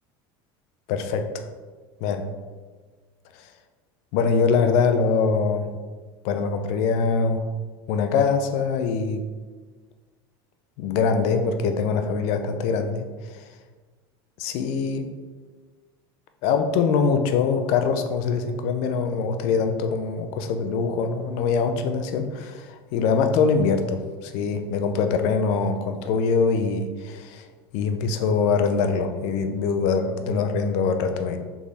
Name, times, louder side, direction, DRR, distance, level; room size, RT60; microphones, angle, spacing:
voice 1, 0.9-1.4 2.0-2.3 3.4-3.5 4.1-5.7 6.2-7.5 7.9-9.3 10.8-13.4 14.4-15.1 16.4-27.5 27.7-31.4, left 5 dB, 60° left, 7 dB, 0.5 m, -23 dB
3.5 x 3.2 x 4.0 m, 1.4 s
supercardioid pair, 130°, 12 cm